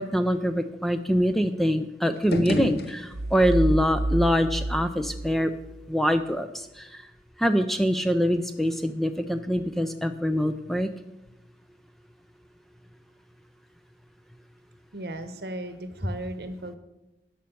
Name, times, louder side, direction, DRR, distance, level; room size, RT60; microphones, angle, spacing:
voice 1, 0.0-5.5 5.9-7.0 7.4-10.9, equal, ahead, 9 dB, 0.4 m, -24 dB
sound 1, 2.1-3.6, left 1 dB, 60° left, 0.9 m, -30 dB
sound 2, 3.1-5.8, right 2 dB, 85° right, 1.0 m, -29 dB
voice 2, 14.9-16.8, right 1 dB, 60° right, 10 dB, 1.1 m, -36 dB
11.0 x 6.3 x 6.9 m, 0.97 s
head